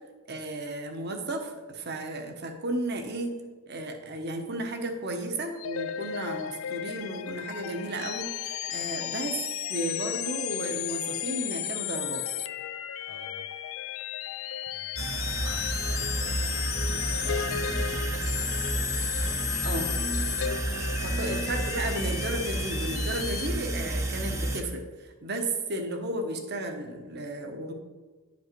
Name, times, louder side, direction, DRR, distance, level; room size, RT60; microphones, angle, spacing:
voice 1, 0.3-3.4 3.7-9.4 9.7-12.2 19.6-19.9 21.0-27.7, right 1 dB, 45° right, 4 dB, 1.0 m, -33 dB
sound 1, 5.6-23.5, left 11 dB, 65° left, 0.4 m, -34 dB
voice 2, 13.1-13.5 14.7-18.6 20.9-21.3, left 3 dB, 85° left, 5 dB, 0.8 m, -47 dB
sound 2, 15.0-24.6, right 1 dB, 15° right, 0.6 m, -31 dB
10.0 x 5.3 x 4.5 m, 1.3 s
head